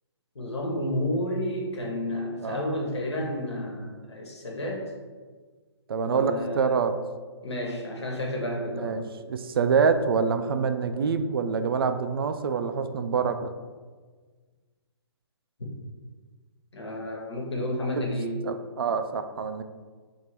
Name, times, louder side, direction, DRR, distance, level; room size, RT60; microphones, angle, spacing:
voice 1, 0.3-4.9 6.0-6.7 7.4-9.0 16.7-18.4, left 1 dB, 75° left, -1 dB, 1.3 m, -31 dB
voice 2, 5.9-7.0 8.8-13.5 18.0-18.1 18.4-19.6, right 5 dB, 55° right, 9 dB, 0.4 m, -26 dB
3.5 x 2.9 x 4.8 m, 1.5 s
figure-of-eight pair, 135°, 14 cm